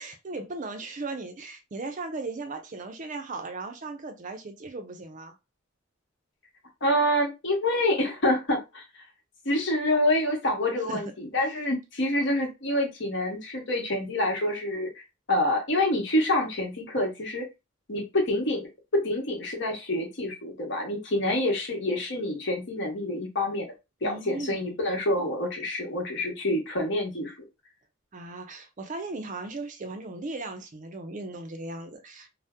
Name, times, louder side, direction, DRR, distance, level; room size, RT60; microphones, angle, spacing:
voice 1, 0.0-5.4 10.9-11.0 24.0-24.8 28.1-32.3, right 3 dB, 35° right, 0.4 m, -37 dB
voice 2, 6.8-8.8 9.4-14.9 15.3-17.5 17.9-23.7 24.0-27.3, left 1 dB, 60° left, 1.1 m, -27 dB
2.6 x 2.0 x 3.5 m
head